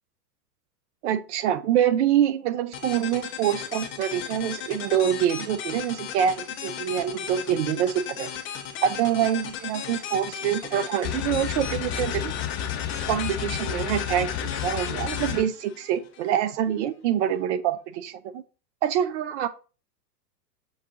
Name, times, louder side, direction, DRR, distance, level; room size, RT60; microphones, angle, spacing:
voice 1, 1.0-8.3 8.8-12.3 13.1-18.4 18.8-19.5, right 10 dB, 45° right, 0.5 m, -25 dB
sound 1, 2.7-16.4, left 8 dB, 25° left, 0.7 m, -36 dB
sound 2, 11.0-15.4, left 9 dB, 60° left, 1.0 m, -31 dB
6.2 x 2.3 x 3.7 m
hypercardioid pair, 100°, 50 cm